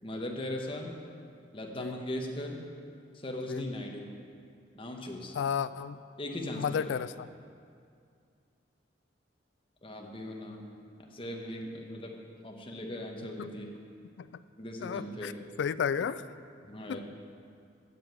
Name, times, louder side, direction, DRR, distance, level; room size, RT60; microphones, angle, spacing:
voice 1, 0.0-1.0 1.5-2.6 3.1-4.1 4.7-5.4 6.2-6.9 9.8-10.6 11.1-12.1 12.4-13.7 14.6-15.3 16.6-17.1, left 1 dB, 30° left, 1 dB, 1.1 m, -38 dB
voice 2, 5.3-6.0 6.6-7.3 13.4-13.5 14.2-14.3 14.8-15.3 15.6-16.2 16.9-17.0, left 7 dB, 75° left, 15 dB, 0.3 m, -32 dB
7.7 x 7.4 x 7.7 m, 2.3 s
head